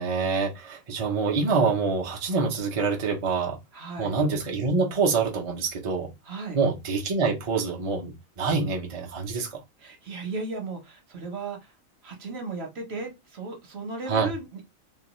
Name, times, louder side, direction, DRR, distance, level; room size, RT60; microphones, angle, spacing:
voice 1, 0.0-3.6 4.0-6.1 6.5-9.6 14.1-14.3, right 4 dB, 40° right, 0.5 m, -26 dB
voice 2, 3.7-4.1 6.3-6.6 9.8-11.6 12.0-14.6, right 3 dB, 55° right, 1.0 m, -35 dB
2.6 x 2.2 x 2.9 m
omnidirectional pair, 1.4 m